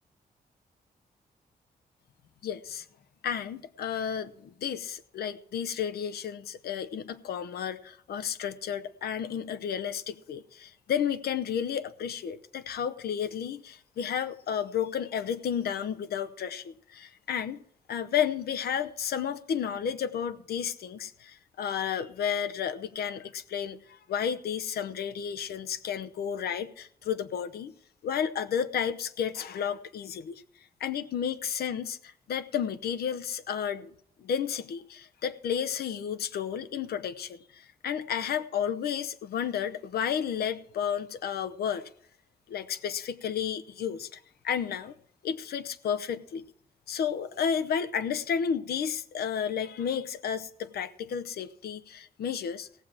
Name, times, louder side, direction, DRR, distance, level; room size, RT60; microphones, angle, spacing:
voice 1, 2.4-2.9 3.2-17.6 17.9-27.7 28.0-30.4 30.8-41.9 42.5-44.9 45.2-46.4 46.9-52.7, left 8 dB, 90° left, 10 dB, 0.8 m, -32 dB
18.0 x 7.3 x 4.9 m, 0.64 s
wide cardioid pair, 135°, 16 cm